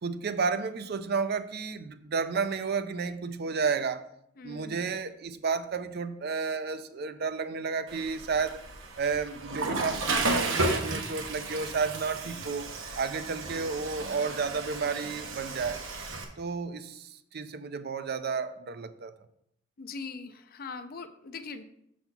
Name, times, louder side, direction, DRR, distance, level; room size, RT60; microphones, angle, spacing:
voice 1, 0.0-4.1 4.4-8.7 9.0-12.7 13.0-15.8 16.4-19.1, right 5 dB, 55° right, 0.5 m, -32 dB
voice 2, 4.4-4.8 19.8-21.6, left 4 dB, 50° left, 0.5 m, -41 dB
Water / Toilet flush, 7.9-16.2, right 2 dB, 80° right, 1.1 m, -33 dB
6.7 x 4.2 x 5.8 m
head